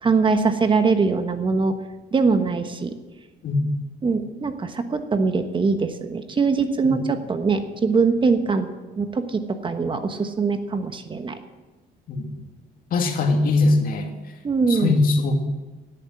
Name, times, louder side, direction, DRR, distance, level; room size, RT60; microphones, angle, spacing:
voice 1, 0.0-1.8 2.1-2.9 4.0-8.7 9.0-11.4 14.4-14.9, right 4 dB, 30° right, 8 dB, 1.2 m, -22 dB
voice 2, 12.9-14.1 14.7-15.4, left 3 dB, 55° left, 4 dB, 2.4 m, -21 dB
16.5 x 8.8 x 7.8 m, 1.2 s
cardioid pair, 110°, 17 cm